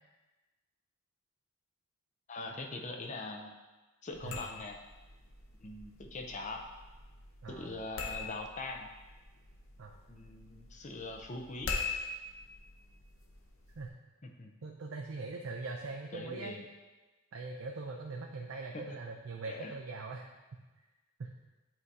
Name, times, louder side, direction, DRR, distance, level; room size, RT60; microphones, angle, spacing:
voice 1, 2.3-3.5 4.0-4.8 5.6-6.6 7.6-8.9 10.1-11.7 14.2-14.5 16.1-16.6 18.7-18.8 19.5-19.7, left 2 dB, 35° left, 2 dB, 0.6 m, -42 dB
sound 1, 4.1-13.9, left 4 dB, 70° left, 0.8 m, -44 dB
voice 2, 7.4-7.7 9.8-10.0 13.8-13.9 14.6-16.6 17.3-20.3 21.2-21.3, right 3 dB, 65° right, 1 dB, 0.5 m, -41 dB
7.7 x 2.8 x 4.7 m, 1.2 s
head